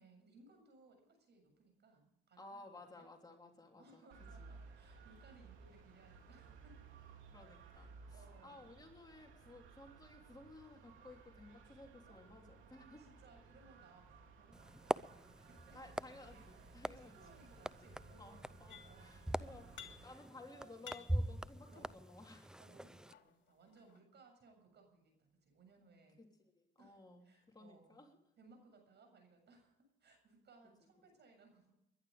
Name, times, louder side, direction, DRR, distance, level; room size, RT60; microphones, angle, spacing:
voice 1, 0.0-2.6 2.9-3.1 3.8-6.8 7.7-8.8 12.1-14.1 14.4-15.0 15.5-15.8 16.2-16.4 17.0-19.0 19.4-19.6 20.0-20.9 21.6-22.1 22.6-26.2 26.8-28.0 28.4-31.7, right 3 dB, 60° right, 5 dB, 7.3 m, -65 dB
voice 2, 2.4-4.1 4.4-4.6 7.3-13.1 15.7-17.2 18.2-19.7 20.0-22.5 26.2-28.2, left 2 dB, 20° left, 1 dB, 3.3 m, -57 dB
sound 1, 4.1-20.0, right 4 dB, 85° right, 2.7 m, -59 dB
sound 2, 14.5-23.1, right 1 dB, 5° right, 0.5 m, -44 dB
sound 3, 18.7-19.2 19.5-20.4 20.7-22.2 22.9-24.0, left 9 dB, 70° left, 2.8 m, -56 dB
21.0 x 11.0 x 5.1 m, 0.81 s
cardioid pair, 90°, 20 cm